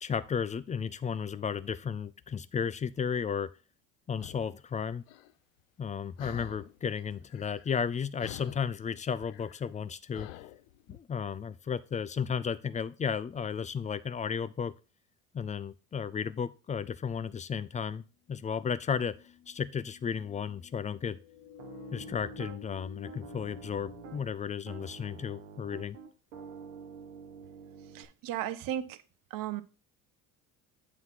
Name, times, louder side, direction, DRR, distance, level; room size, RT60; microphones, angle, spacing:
voice 1, 0.0-3.5 4.1-5.0 5.8-10.3 10.9-14.7 15.3-18.0 18.3-19.2 19.5-21.2 21.9-26.0, left 7 dB, 20° left, 0.3 m, -34 dB
sound 1, 4.2-4.5 5.1-5.3 6.2-6.8 7.1-7.9 8.2-11.0, left 13 dB, 85° left, 0.5 m, -47 dB
sound 2, 18.4-25.2, left 7 dB, 50° left, 1.1 m, -52 dB
Piano, 21.6-22.6 23.0-24.3 24.7-28.1, right 7 dB, 90° right, 1.1 m, -47 dB
voice 2, 27.9-29.0 29.3-29.6, right 11 dB, 60° right, 0.7 m, -35 dB
7.9 x 3.1 x 5.7 m
hypercardioid pair, 70°, 39 cm